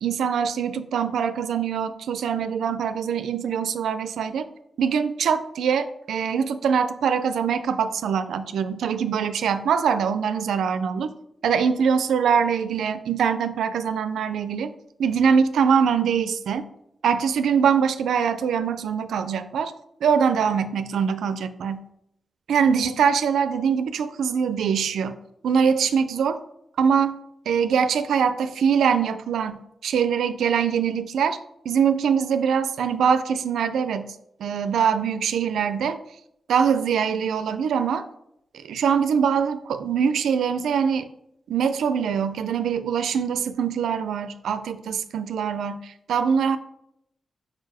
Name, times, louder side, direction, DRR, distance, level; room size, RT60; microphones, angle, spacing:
voice 1, 0.0-4.5 4.8-11.1 11.4-14.7 15.0-16.7 17.0-19.7 20.0-21.9 22.5-25.2 25.4-26.4 26.8-27.2 27.5-31.4 31.7-34.1 34.4-36.0 36.5-38.1 38.7-41.1 41.5-46.6, right 7 dB, 90° right, 11 dB, 0.4 m, -23 dB
4.8 x 4.7 x 4.8 m, 0.76 s
cardioid pair, 70°, 0 cm